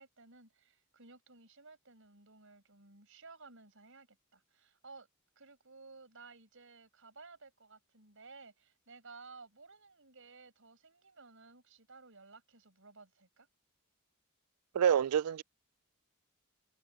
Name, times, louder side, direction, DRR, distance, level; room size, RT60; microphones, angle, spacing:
voice 1, 0.0-5.1 5.3-13.5, right 4 dB, 60° right, 6.6 m, -56 dB
voice 2, 14.7-15.4, right 8 dB, 85° right, 0.3 m, -27 dB
head